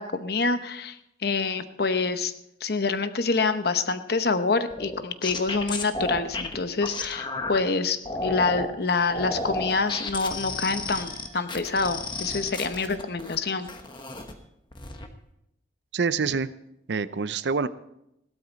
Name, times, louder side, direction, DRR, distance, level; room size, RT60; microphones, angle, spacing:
voice 1, 0.0-2.3 2.6-13.7, left 4 dB, 55° left, 10 dB, 0.9 m, -26 dB
sound 1, 4.7-7.6 8.1-8.7 9.1-13.4 13.7-14.3 14.7-15.1, left 2 dB, 25° left, 1.1 m, -32 dB
sound 2, 8.8-14.4, right 1 dB, 15° right, 3.0 m, -52 dB
voice 2, 15.9-16.5 16.9-17.7, right 5 dB, 65° right, 14 dB, 0.6 m, -26 dB
16.5 x 12.5 x 4.0 m, 0.80 s
head